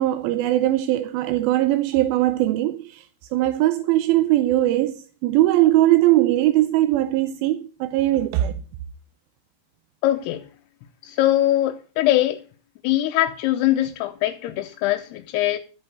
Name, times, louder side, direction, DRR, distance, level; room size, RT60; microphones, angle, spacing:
voice 1, 0.0-3.1 3.3-8.5, right 15 dB, 80° right, 2.4 m, -20 dB
voice 2, 10.0-10.5 11.0-12.4 12.8-15.6, left 14 dB, 90° left, 2.8 m, -22 dB
13.5 x 5.3 x 8.0 m
omnidirectional pair, 4.6 m